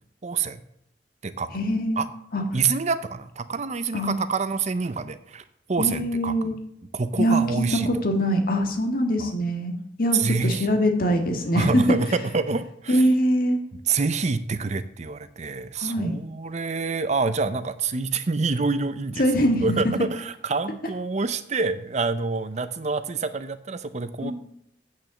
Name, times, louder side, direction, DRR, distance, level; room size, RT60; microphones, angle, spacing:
voice 1, 0.2-0.6 1.2-1.5 2.0-2.1 2.5-5.4 5.7-6.5 6.9-7.9 9.2-9.3 10.1-10.7 11.5-13.0 13.9-19.2 19.6-24.3, right 4 dB, 40° right, 13 dB, 0.6 m, -27 dB
voice 2, 1.5-2.4 3.9-4.2 5.8-6.6 7.2-9.7 10.0-12.0 12.9-13.6 15.8-16.2 19.2-20.1 24.2-24.3, equal, 55° left, 4 dB, 1.7 m, -23 dB
8.5 x 6.4 x 6.9 m, 0.75 s
head